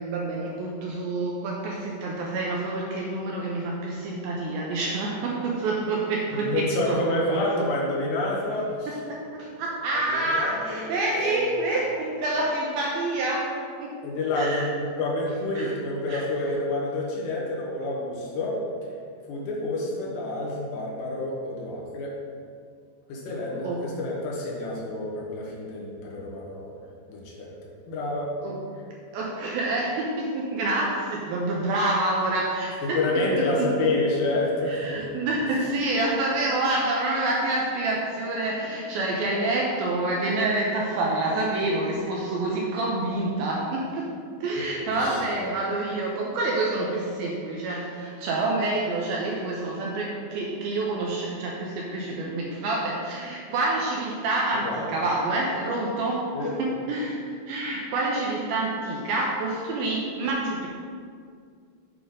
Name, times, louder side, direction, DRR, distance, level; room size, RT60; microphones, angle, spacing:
voice 1, 0.0-7.7 8.9-14.0 14.3-14.7 15.6-15.7 16.1-16.2 23.6-23.9 28.4-28.7 29.1-34.0 34.7-44.1 44.4-60.7, right 2 dB, 80° right, -2 dB, 2.2 m, -27 dB
voice 2, 6.4-9.0 9.9-10.8 11.1-11.7 14.0-14.7 15.0-18.6 19.3-22.1 23.1-26.8 27.1-27.5 27.9-28.3 32.8-35.2 44.8-45.2 54.5-54.9 56.3-56.8, left 2 dB, 80° left, -4 dB, 3.5 m, -28 dB
8.8 x 4.9 x 3.8 m, 2.2 s
omnidirectional pair, 4.9 m